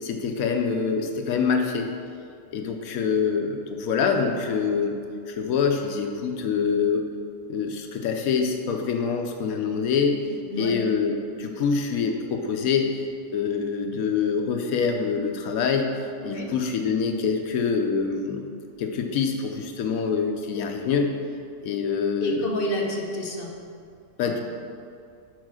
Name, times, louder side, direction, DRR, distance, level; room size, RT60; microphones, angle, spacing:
voice 1, 0.0-1.9 2.5-4.9 5.3-7.0 7.5-10.2 10.6-12.9 13.3-15.9 16.2-18.5 18.8-21.1 21.6-22.4 24.2-24.4, left 5 dB, 80° left, 4 dB, 1.1 m, -25 dB
voice 2, 22.2-23.5 24.2-24.4, left 1 dB, 45° left, 0 dB, 0.9 m, -29 dB
6.4 x 4.6 x 6.2 m, 2.4 s
omnidirectional pair, 1.5 m